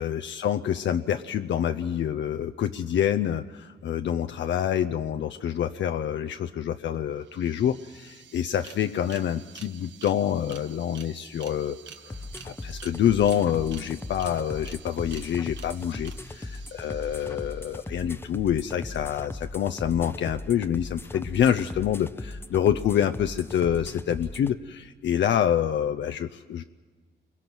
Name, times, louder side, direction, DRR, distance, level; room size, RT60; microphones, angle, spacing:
voice 1, 0.0-11.8 12.0-12.2 12.4-26.6, left 9 dB, 75° left, 8 dB, 0.6 m, -27 dB
sound 1, 6.9-7.0 7.2-18.0, right 8 dB, 75° right, 1.4 m, -49 dB
sound 2, 12.1-24.5, left 2 dB, 10° left, 0.7 m, -39 dB
29.0 x 23.0 x 6.1 m, 1.5 s
cardioid pair, 85°, 19 cm